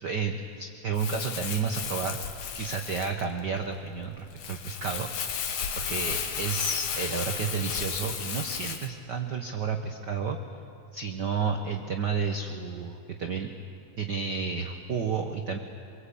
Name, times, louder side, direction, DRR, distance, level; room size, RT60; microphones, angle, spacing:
voice 1, 0.0-5.5 5.8-10.4 10.9-13.5 14.0-15.6, right 5 dB, 70° right, 5 dB, 1.0 m, -31 dB
Crumpling crinkling, 0.9-8.9, left 7 dB, 70° left, 2.6 m, -34 dB
23.5 x 23.5 x 8.5 m, 2.6 s
omnidirectional pair, 3.5 m